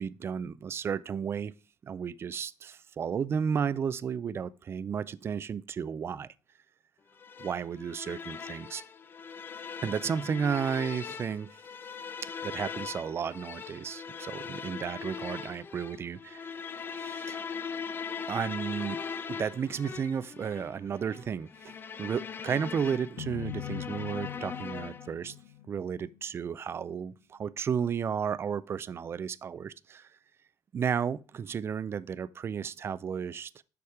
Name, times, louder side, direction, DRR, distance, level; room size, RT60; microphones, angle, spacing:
voice 1, 0.0-1.5 1.8-6.3 7.4-8.8 9.8-11.5 12.2-16.5 16.9-17.4 18.3-19.0 19.3-25.4 25.7-30.1 30.7-33.6, right 7 dB, 35° right, 0.4 m, -33 dB
sound 1, 7.2-25.2, left 6 dB, 30° left, 0.4 m, -40 dB
sound 2, 23.2-26.4, left 13 dB, 75° left, 0.9 m, -41 dB
7.1 x 5.0 x 4.8 m
cardioid pair, 120°, 7 cm